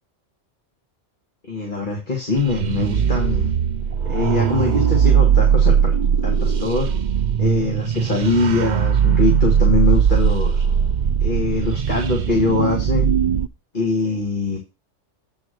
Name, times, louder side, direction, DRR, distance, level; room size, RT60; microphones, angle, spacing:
voice 1, 1.5-3.5 4.0-5.9 6.2-6.9 7.4-10.6 11.2-13.1 13.7-14.6, left 3 dB, 40° left, 0 dB, 2.0 m, -23 dB
sound 1, 2.4-13.5, right 8 dB, 55° right, 0.5 m, -19 dB
8.3 x 4.5 x 6.4 m, 0.29 s
omnidirectional pair, 1.2 m